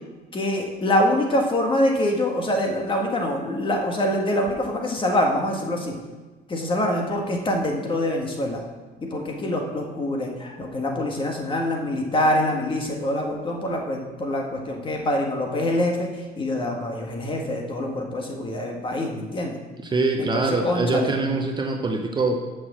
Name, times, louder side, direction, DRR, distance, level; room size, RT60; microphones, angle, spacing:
voice 1, 0.3-5.9 6.5-8.6 9.0-19.6 20.2-21.1, left 1 dB, 30° left, 1 dB, 1.6 m, -25 dB
voice 2, 19.8-22.4, right 3 dB, 25° right, 3 dB, 0.8 m, -24 dB
6.3 x 6.2 x 7.4 m, 1.3 s
cardioid pair, 110°, 17 cm